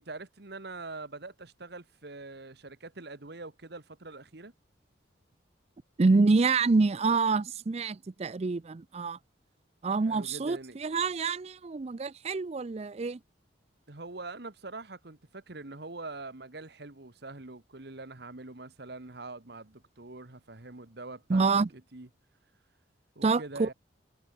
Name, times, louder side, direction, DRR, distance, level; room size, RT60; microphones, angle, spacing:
voice 1, 0.0-4.5 10.1-10.8 13.9-21.4 21.7-22.1 23.1-23.7, right 3 dB, 60° right, 1.6 m, -44 dB
voice 2, 6.0-9.2 9.8-13.2 21.3-21.7 23.2-23.7, right 4 dB, 35° right, 0.4 m, -26 dB
head